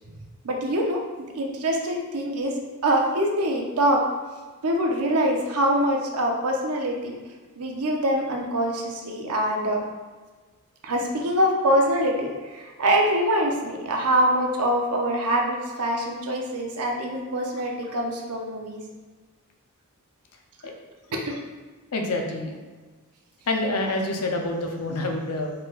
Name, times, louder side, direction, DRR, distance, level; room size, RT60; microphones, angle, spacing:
voice 1, 0.4-2.5 2.8-4.1 4.6-7.1 7.6-9.8 10.8-18.8 21.1-21.4, right 1 dB, 75° right, 0 dB, 0.7 m, -24 dB
voice 2, 21.9-22.6 23.5-25.5, left 2 dB, 85° left, 2 dB, 0.6 m, -27 dB
4.4 x 3.9 x 2.4 m, 1.4 s
head